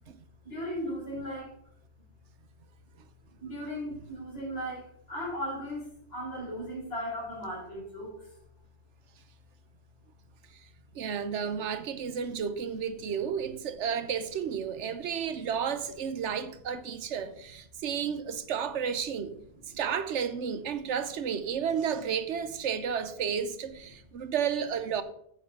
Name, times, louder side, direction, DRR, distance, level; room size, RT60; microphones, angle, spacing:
voice 1, 0.4-1.5 3.4-8.4 11.3-11.4 19.7-19.8 20.8-20.9, equal, 55° left, 4.7 m, -37 dB
voice 2, 10.9-19.4 19.7-25.0, right 7 dB, 85° right, 1.1 m, -32 dB
8.1 x 7.1 x 5.8 m
omnidirectional pair, 1.2 m